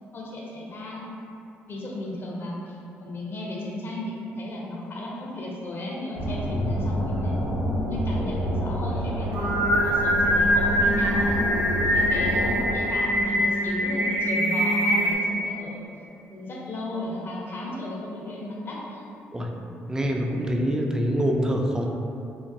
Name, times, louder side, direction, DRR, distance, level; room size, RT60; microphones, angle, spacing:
voice 1, 0.1-1.1 1.7-7.4 7.6-9.5 9.8-11.4 11.9-15.8 16.3-19.0, left 1 dB, 50° left, -4 dB, 0.7 m, -35 dB
sound 1, 6.2-12.8, equal, 85° left, 0.5 m, -28 dB
Singing, 9.2-15.1, equal, 75° right, 0.5 m, -23 dB
voice 2, 19.9-21.9, equal, 10° right, 1 dB, 0.4 m, -25 dB
3.1 x 2.2 x 2.6 m, 2.7 s
hypercardioid pair, 55°, 5 cm